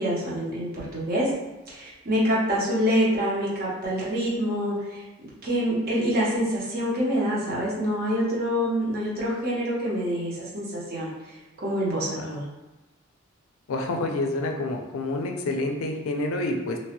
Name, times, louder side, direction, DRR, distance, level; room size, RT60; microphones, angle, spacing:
voice 1, 0.0-1.3 1.7-5.0 5.4-11.1 11.6-12.4, equal, 50° right, -6 dB, 0.9 m, -26 dB
voice 2, 13.7-16.8, left 2 dB, 80° left, 3 dB, 0.4 m, -28 dB
3.0 x 2.2 x 2.9 m, 1.1 s
head